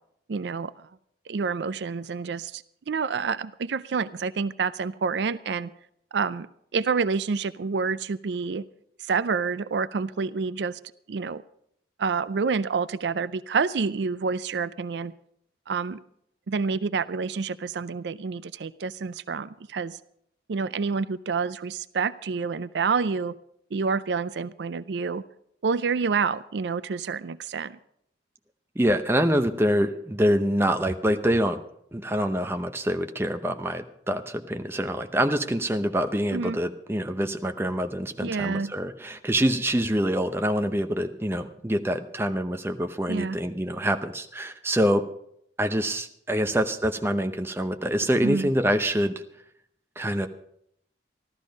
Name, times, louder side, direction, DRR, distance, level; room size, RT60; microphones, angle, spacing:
voice 1, 0.3-0.7 1.3-5.7 6.1-6.5 6.7-8.7 9.0-10.8 11.1-11.4 12.0-15.1 15.7-16.0 16.5-20.0 20.5-23.4 23.7-25.2 25.6-27.8 36.3-36.6 38.2-38.7 43.1-43.4 48.2-48.5, right 5 dB, 75° right, 16 dB, 0.4 m, -28 dB
voice 2, 28.8-31.6 31.9-45.1 45.6-49.1 50.0-50.3, equal, 15° right, 7 dB, 0.7 m, -25 dB
14.0 x 12.5 x 5.2 m, 0.72 s
head